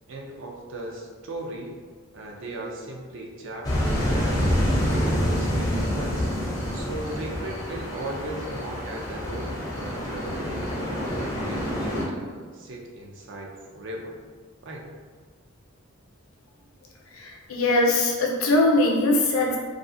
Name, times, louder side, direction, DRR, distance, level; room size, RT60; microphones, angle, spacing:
voice 1, 0.1-1.7 2.1-6.3 6.7-14.2 14.6-14.9, right 1 dB, 60° right, 0 dB, 0.4 m, -37 dB
sound 1, 3.6-12.0, equal, 15° left, 0.4 m, -27 dB
voice 2, 17.1-19.6, left 2 dB, 80° left, -1 dB, 0.5 m, -21 dB
2.4 x 2.4 x 2.5 m, 1.5 s
head